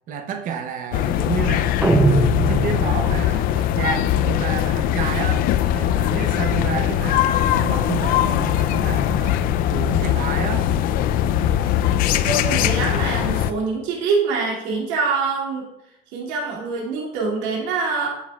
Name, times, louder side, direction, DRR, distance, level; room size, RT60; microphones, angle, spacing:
voice 1, 0.1-1.8 2.1-5.5 5.7-9.5 9.7-10.7, right 7 dB, 50° right, 0.8 m, -30 dB
sound 1, 0.9-13.5, left 11 dB, 55° left, 0.4 m, -21 dB
sound 2, 1.8-3.3, right 3 dB, 10° right, 0.5 m, -20 dB
voice 2, 12.2-15.7 16.1-18.1, right 4 dB, 80° right, 2.4 m, -24 dB
9.7 x 8.2 x 2.3 m
cardioid pair, 150°, 18 cm